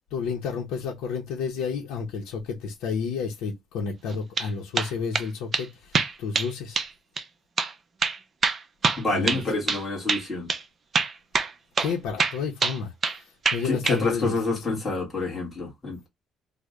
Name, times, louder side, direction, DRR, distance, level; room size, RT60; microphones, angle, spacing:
voice 1, 0.1-6.8 9.1-9.4 11.8-14.4 14.7-14.8, left 5 dB, 80° left, 0.7 m, -31 dB
sound 1, 4.1-4.5 4.8-5.3 5.5-5.7 5.9-6.5 6.8-6.9 7.2-7.3 7.6-7.7 8.0-9.8 10.1-10.2 10.5-10.6 10.9-11.9 12.2-13.2 13.5-14.0, right 4 dB, 25° right, 0.4 m, -25 dB
voice 2, 9.0-10.5 13.6-16.1, left 3 dB, 15° left, 1.4 m, -28 dB
3.2 x 2.1 x 3.6 m
cardioid pair, 175°, 0 cm